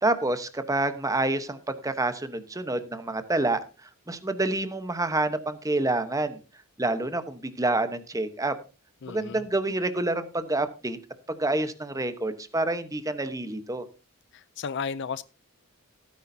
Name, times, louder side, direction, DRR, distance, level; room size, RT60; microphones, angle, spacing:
voice 1, 0.0-6.4 6.8-8.5 9.1-11.0 11.3-13.8, right 2 dB, 15° right, 1.0 m, -28 dB
voice 2, 9.0-9.4 14.3-15.2, left 6 dB, 55° left, 0.5 m, -34 dB
17.0 x 9.6 x 2.7 m
head